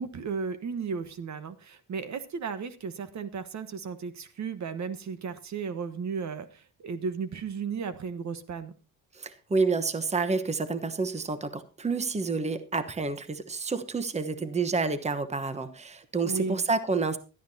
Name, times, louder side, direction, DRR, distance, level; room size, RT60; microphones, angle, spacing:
voice 1, 0.0-8.7 16.2-16.6, right 5 dB, 55° right, 1.2 m, -34 dB
voice 2, 9.1-17.2, right 4 dB, 20° right, 1.1 m, -29 dB
17.0 x 12.0 x 2.8 m
cardioid pair, 95°, 34 cm